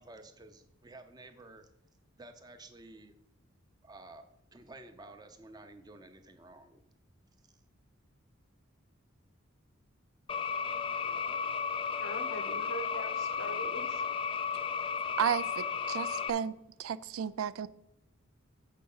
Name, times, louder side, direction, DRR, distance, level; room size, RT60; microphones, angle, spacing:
voice 1, 0.0-1.7 2.2-3.1 3.8-4.2 4.5-6.8, right 2 dB, 20° right, 7 dB, 0.6 m, -52 dB
sound 1, 10.3-16.3, left 6 dB, 25° left, 0.3 m, -34 dB
voice 2, 12.0-14.0, equal, 80° left, 7 dB, 1.1 m, -42 dB
voice 3, 15.2-16.5 16.8-17.7, right 8 dB, 90° right, 16 dB, 0.4 m, -33 dB
7.6 x 4.7 x 5.4 m, 0.82 s
head